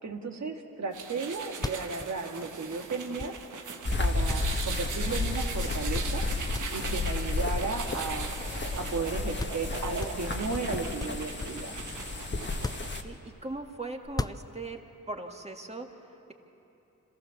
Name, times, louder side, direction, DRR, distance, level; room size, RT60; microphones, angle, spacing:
voice 1, 0.0-3.4 4.0-8.4 8.7-11.7, right 4 dB, 65° right, 3 dB, 2.1 m, -35 dB
sound 1, 0.9-13.0, right 5 dB, 80° right, 1.5 m, -40 dB
sound 2, 1.5-3.7 4.3-5.3 5.6-5.7 5.9-6.2 6.5-8.7 9.0-9.1 9.4-9.7 10.0-11.7 12.5-13.4 14.0-14.8, left 3 dB, 15° left, 0.4 m, -38 dB
sound 3, 3.9-13.0, left 3 dB, 35° left, 1.6 m, -32 dB
voice 2, 13.0-14.8 15.1-16.3, right 2 dB, 20° right, 3 dB, 2.1 m, -39 dB
26.0 x 15.0 x 7.2 m, 2.9 s
cardioid pair, 50°, 30 cm